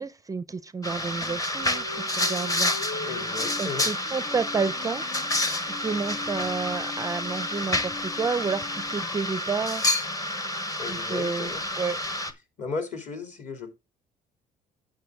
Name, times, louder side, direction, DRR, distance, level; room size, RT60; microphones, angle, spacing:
voice 1, 0.0-2.7 3.6-5.0 5.6-9.9 10.9-12.0, right 5 dB, 20° right, 0.4 m, -30 dB
sound 1, 0.8-12.3, left 1 dB, 20° left, 1.0 m, -29 dB
sound 2, 1.6-9.2, left 4 dB, 80° left, 5.0 m, -42 dB
voice 2, 3.0-3.9 10.8-11.6 12.6-13.7, left 4 dB, 45° left, 2.7 m, -35 dB
9.3 x 6.9 x 3.5 m
cardioid pair, 110°, 17 cm